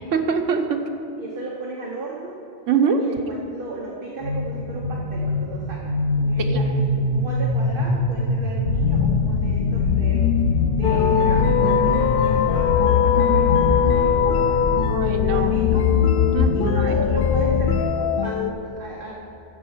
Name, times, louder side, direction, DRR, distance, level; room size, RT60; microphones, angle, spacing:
voice 1, 0.1-0.9 2.7-3.0 6.4-6.6 14.9-15.6 16.3-17.0, right 6 dB, 80° right, 4 dB, 1.2 m, -23 dB
voice 2, 1.2-2.4 3.0-15.9 16.5-19.1, right 3 dB, 45° right, -2 dB, 1.2 m, -35 dB
sound 1, 4.2-12.4, left 1 dB, 25° left, 2.8 m, -25 dB
sound 2, 8.6-17.8, left 7 dB, 85° left, 1.0 m, -22 dB
sound 3, 10.8-18.5, left 8 dB, 60° left, 0.6 m, -22 dB
9.7 x 7.6 x 7.0 m, 3.0 s
omnidirectional pair, 1.3 m